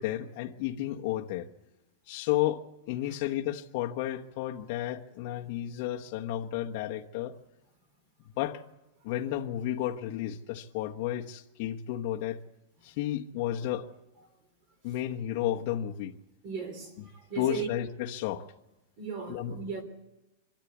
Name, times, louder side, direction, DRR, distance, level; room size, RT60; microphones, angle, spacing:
voice 1, 0.0-1.5 2.1-7.3 8.4-8.6 9.0-12.4 12.8-13.9 14.8-16.2 17.4-18.5 19.3-19.6, left 12 dB, 40° left, 1.2 m, -32 dB
voice 2, 16.4-17.7 19.0-19.8, right 6 dB, 35° right, 3.2 m, -37 dB
24.5 x 13.5 x 8.5 m
supercardioid pair, 170°, 0 cm